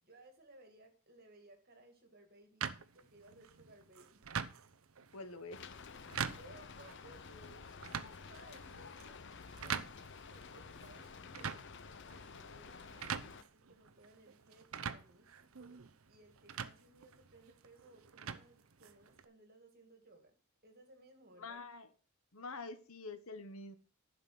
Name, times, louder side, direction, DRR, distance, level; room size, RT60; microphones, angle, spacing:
voice 1, 0.0-2.7 2.9-4.2 6.1-9.8 10.3-11.7 12.0-15.7 16.1-20.3 20.6-21.6, right 2 dB, 45° right, 5 dB, 2.3 m, -61 dB
sound 1, 2.6-19.2, right 7 dB, 70° right, 0.7 m, -45 dB
voice 2, 5.1-5.6 21.4-21.9 22.3-23.8, left 3 dB, 70° left, 11 dB, 1.1 m, -46 dB
Rain, 5.5-13.4, left 5 dB, 50° left, 0.7 m, -51 dB
11.0 x 5.9 x 6.0 m, 0.38 s
head